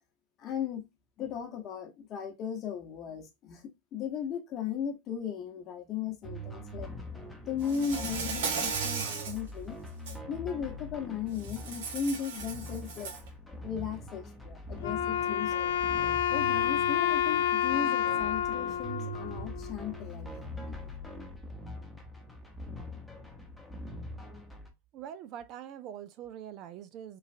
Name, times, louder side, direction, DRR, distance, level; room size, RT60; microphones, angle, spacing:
voice 1, 0.4-0.9 1.2-3.6 3.9-6.9 7.5-9.8 10.3-13.1 13.6-15.8 16.3-20.4, left 7 dB, 40° left, 1.0 m, -36 dB
sound 1, 6.2-24.7, equal, 5° left, 0.8 m, -43 dB
Insect, 7.6-9.4 9.9-10.2 11.4-13.3, right 5 dB, 70° right, 0.9 m, -36 dB
Wind instrument woodwind instrument, 14.8-20.0, left 9 dB, 75° left, 0.4 m, -29 dB
voice 2, 24.9-27.2, right 10 dB, 45° right, 0.4 m, -43 dB
3.1 x 2.3 x 2.6 m
hypercardioid pair, 105°, 0 cm